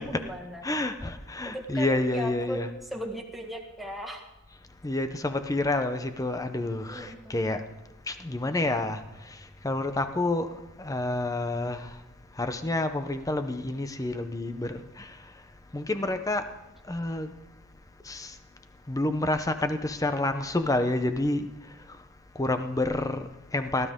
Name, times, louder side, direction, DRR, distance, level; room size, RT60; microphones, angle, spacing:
voice 1, 0.0-0.6 1.4-4.2 6.9-7.5, equal, ahead, 0 dB, 1.6 m, -37 dB
voice 2, 0.6-2.7 4.8-7.6 8.1-11.9 12.4-15.2 15.7-16.5 16.9-17.3 18.0-18.3 18.9-21.5 22.3-23.9, left 2 dB, 15° left, 9 dB, 0.7 m, -29 dB
18.0 x 12.5 x 3.7 m, 1.0 s
head